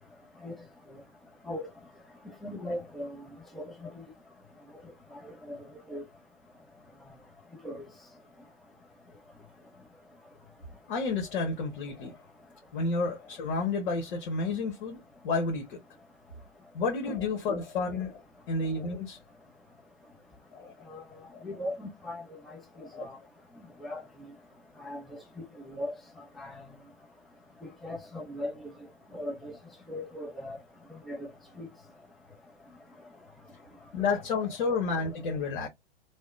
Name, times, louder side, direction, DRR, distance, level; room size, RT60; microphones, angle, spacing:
voice 1, 2.4-3.2 3.5-3.9 5.5-5.6 5.9-6.0 7.6-7.8 17.1-17.2 20.9-21.0 21.4-22.6 23.0-23.1 23.8-24.0 24.8-25.0 25.7-25.9 26.4-26.5 27.8-28.5 29.1-29.5 29.9-30.6 31.1-31.3 31.6-31.7, left 1 dB, ahead, 0.5 m, -37 dB
voice 2, 10.9-12.2 12.7-15.0 15.2-15.8 16.7-18.2 18.5-19.2 20.5-20.7 21.3-21.4 22.8-23.0 33.9-35.7, left 4 dB, 55° left, 1.2 m, -30 dB
3.4 x 2.2 x 2.4 m
hypercardioid pair, 120°, 32 cm